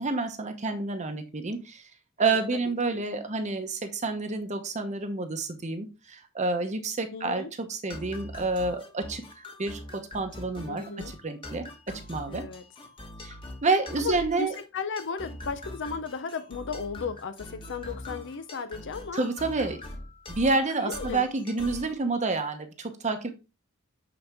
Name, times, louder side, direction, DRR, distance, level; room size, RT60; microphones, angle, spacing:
voice 1, 0.0-1.8 2.2-12.4 13.2-13.4 13.6-14.5 19.1-19.8 20.3-23.3, right 3 dB, 35° right, 0.9 m, -29 dB
voice 2, 7.1-7.5 10.7-11.1 12.3-12.6 14.0-19.2 20.8-21.3, left 5 dB, 60° left, 0.6 m, -35 dB
sound 1, 7.9-22.0, left 1 dB, 25° left, 1.4 m, -43 dB
8.1 x 4.3 x 3.5 m
head